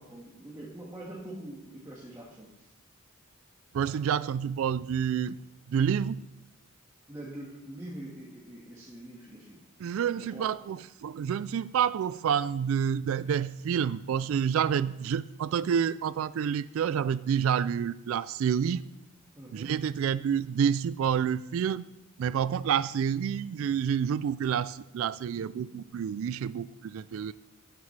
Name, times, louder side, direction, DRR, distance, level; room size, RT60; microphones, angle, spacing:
voice 1, 0.0-2.7 7.1-9.6 10.2-10.5 19.3-19.7 25.5-25.7, right 1 dB, 15° right, -5 dB, 1.6 m, -44 dB
voice 2, 3.7-5.4 5.7-6.2 9.8-18.8 19.5-21.8 22.2-27.3, right 8 dB, 70° right, 17 dB, 0.3 m, -28 dB
12.5 x 9.7 x 3.3 m, 0.92 s
head